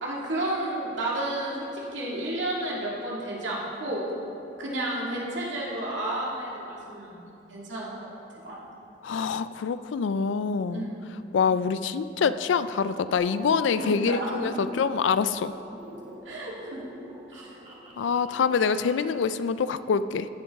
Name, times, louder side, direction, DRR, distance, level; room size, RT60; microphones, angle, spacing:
voice 1, 0.0-4.0 4.6-7.9 8.4-8.6 10.6-11.0 13.8-14.7 16.3-16.8 17.3-17.5, right 1 dB, 85° right, -5 dB, 2.1 m, -32 dB
voice 2, 9.0-10.9 11.3-15.5 18.0-20.3, left 6 dB, 85° left, 14 dB, 0.4 m, -25 dB
sound 1, 13.1-19.1, equal, 25° right, 1.7 m, -45 dB
14.5 x 7.0 x 3.6 m, 2.7 s
head